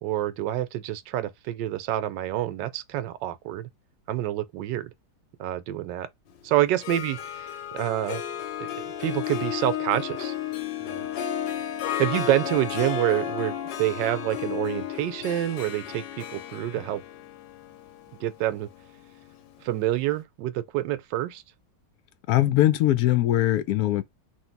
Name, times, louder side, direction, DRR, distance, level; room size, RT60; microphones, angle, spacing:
voice 1, 0.0-3.7 4.1-4.9 5.4-6.1 6.4-8.2 8.6-10.3 10.8-11.1 12.0-17.0 18.2-18.7 19.6-21.4, right 14 dB, 80° right, 1.2 m, -27 dB
Harp, 6.7-19.6, left 9 dB, 90° left, 1.3 m, -33 dB
voice 2, 22.3-24.0, left 14 dB, 70° left, 0.9 m, -21 dB
3.1 x 2.7 x 4.4 m
omnidirectional pair, 1.9 m